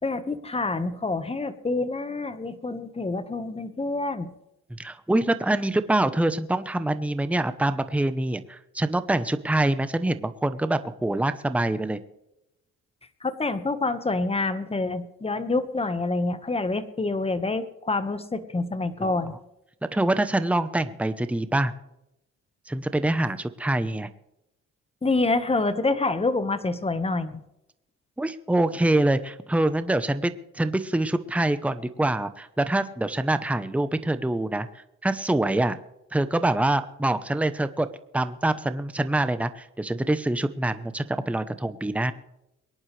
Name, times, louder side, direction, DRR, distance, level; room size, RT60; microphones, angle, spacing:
voice 1, 0.0-4.3 13.2-19.3 25.0-27.4, left 3 dB, 20° left, 10 dB, 1.4 m, -27 dB
voice 2, 4.7-12.0 19.0-19.2 19.9-21.7 22.7-24.1 28.2-35.8 36.1-37.9 38.1-42.1, right 1 dB, 5° right, 11 dB, 0.9 m, -25 dB
23.5 x 10.5 x 3.3 m, 0.85 s
cardioid pair, 90°, 30 cm